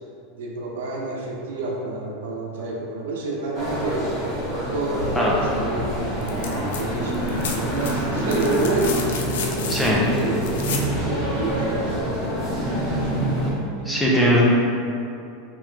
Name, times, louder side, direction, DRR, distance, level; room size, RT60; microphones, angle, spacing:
voice 1, 0.3-4.1 4.7-10.6 11.0-13.1 13.8-14.4, right 2 dB, 80° right, -2 dB, 0.7 m, -30 dB
sound 1, 3.5-13.5, right 1 dB, 20° left, 1.4 m, -26 dB
sound 2, 6.2-6.8 7.1-10.9 12.6-12.7, left 6 dB, 90° left, 0.4 m, -32 dB
voice 2, 9.7-10.0 13.9-14.4, equal, 5° left, -6 dB, 0.4 m, -19 dB
3.6 x 3.0 x 3.2 m, 2.6 s
supercardioid pair, 180°, 0 cm